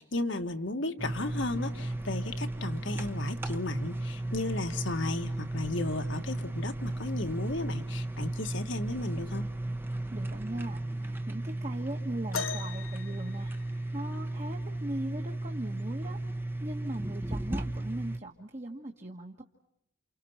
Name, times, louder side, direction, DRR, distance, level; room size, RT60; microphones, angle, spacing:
voice 1, 0.0-9.5, left 2 dB, 65° left, 6 dB, 1.9 m, -34 dB
sound 1, 1.0-18.2, right 1 dB, 10° right, 1.1 m, -35 dB
voice 2, 10.1-16.2 16.6-19.4, right 1 dB, 35° right, 1 dB, 1.7 m, -40 dB
sound 2, 12.3-14.2 15.9-16.0 16.8-17.0 17.9-18.0, left 5 dB, 90° left, 1.5 m, -39 dB
30.0 x 29.0 x 5.8 m, 0.77 s
head